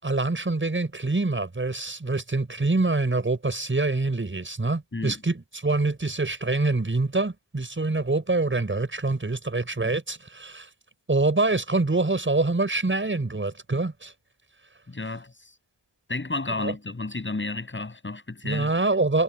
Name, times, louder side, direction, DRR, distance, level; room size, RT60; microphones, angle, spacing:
voice 1, 0.0-10.7 11.1-14.1 16.6-16.7 18.4-19.2, right 3 dB, 25° right, 7.1 m, -25 dB
voice 2, 14.9-15.5 16.1-18.7, left 2 dB, 25° left, 7.4 m, -32 dB
wide cardioid pair, 155°, 48 cm